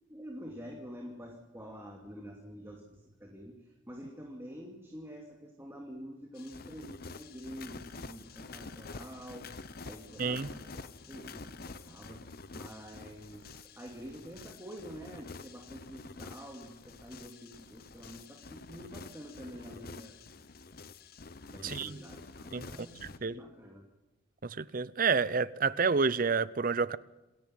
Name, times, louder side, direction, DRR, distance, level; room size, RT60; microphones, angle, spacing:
voice 1, 0.1-20.2 21.5-23.9, equal, 15° right, 2.6 m, -47 dB
sound 1, 6.4-23.2, left 4 dB, 50° left, 0.9 m, -48 dB
voice 2, 21.6-22.0 22.5-22.7 23.2-23.3 24.4-27.0, right 5 dB, 45° right, 0.6 m, -29 dB
27.5 x 10.5 x 9.2 m
head